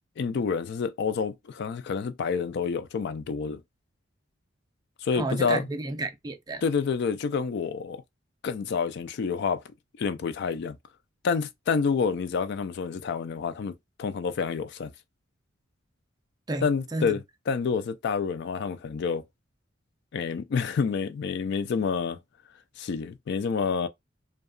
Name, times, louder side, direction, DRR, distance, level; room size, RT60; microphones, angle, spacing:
voice 1, 0.2-3.6 5.0-5.7 6.6-8.0 8.4-9.6 10.0-10.8 11.2-14.9 16.6-17.2 17.5-19.2 20.1-22.2 22.8-23.9, left 5 dB, 60° left, 0.3 m, -28 dB
voice 2, 5.2-6.6 16.5-17.1, right 2 dB, 20° right, 0.4 m, -31 dB
2.7 x 2.3 x 2.3 m
head